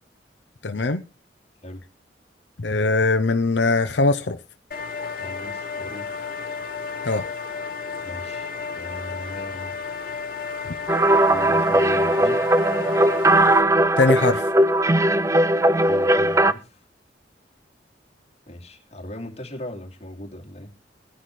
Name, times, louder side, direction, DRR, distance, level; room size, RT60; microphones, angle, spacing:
voice 1, 0.6-1.0 2.6-4.4 7.0-7.2 14.0-14.4, left 3 dB, 85° left, 8 dB, 0.7 m, -21 dB
sound 1, 4.7-13.6, left 5 dB, 55° left, 2.2 m, -32 dB
voice 2, 5.2-6.1 8.0-9.8 11.0-12.4 15.8-16.8 18.5-20.7, left 1 dB, 35° left, 1 dB, 2.5 m, -39 dB
sound 2, 10.9-16.5, right 1 dB, 15° right, 0.6 m, -18 dB
17.5 x 10.0 x 3.2 m, 0.31 s
head